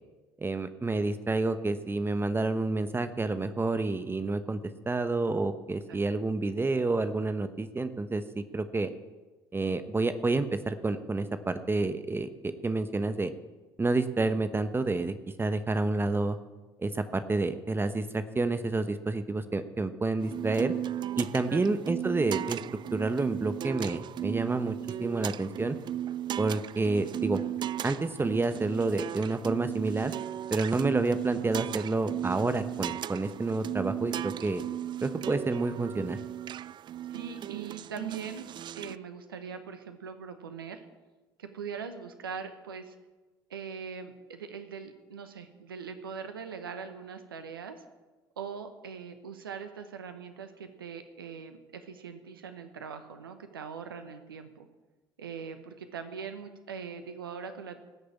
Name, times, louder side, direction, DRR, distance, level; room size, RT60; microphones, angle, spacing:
voice 1, 0.4-4.6 4.9-8.9 9.5-12.3 12.6-13.3 13.8-16.4 16.8-20.7 21.2-22.6 22.9-24.7 25.0-25.8 26.4-27.4 27.8-30.1 30.5-34.6 35.0-36.2, right 3 dB, 20° right, 10 dB, 1.0 m, -29 dB
sound 1, 20.2-39.0, right 11 dB, 40° right, 0.4 m, -36 dB
voice 2, 37.1-38.5 38.8-40.8 41.4-43.0 43.5-47.8 48.4-54.7 55.2-57.8, right 6 dB, 90° right, 8 dB, 1.0 m, -41 dB
18.0 x 6.6 x 8.4 m, 1.2 s
hypercardioid pair, 60°, 12 cm